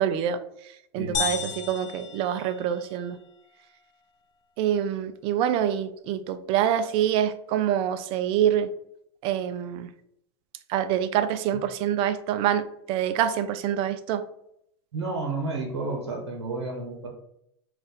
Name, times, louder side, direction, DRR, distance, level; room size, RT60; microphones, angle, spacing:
voice 1, 0.0-3.2 4.6-8.7 9.2-9.9 10.7-14.2, right 10 dB, 40° right, 11 dB, 0.4 m, -26 dB
voice 2, 1.0-1.5 14.9-17.1, right 3 dB, 85° right, 1 dB, 0.9 m, -31 dB
sound 1, 1.1-3.1, left 7 dB, 30° left, 0.5 m, -33 dB
2.5 x 2.4 x 4.0 m, 0.74 s
hypercardioid pair, 110°, 14 cm